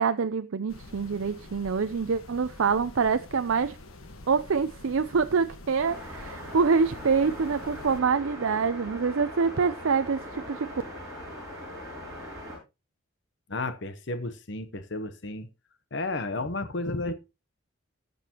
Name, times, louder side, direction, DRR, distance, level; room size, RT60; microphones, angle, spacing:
voice 1, 0.0-3.8 4.3-10.2 10.5-10.7, right 5 dB, 70° right, 0.5 m, -26 dB
sound 1, 0.7-8.0, left 2 dB, 85° left, 1.5 m, -47 dB
sound 2, 5.8-12.6, equal, 15° right, 7.1 m, -40 dB
voice 2, 13.5-15.5 15.9-17.1, left 2 dB, 55° left, 0.9 m, -32 dB
18.0 x 6.7 x 2.9 m
head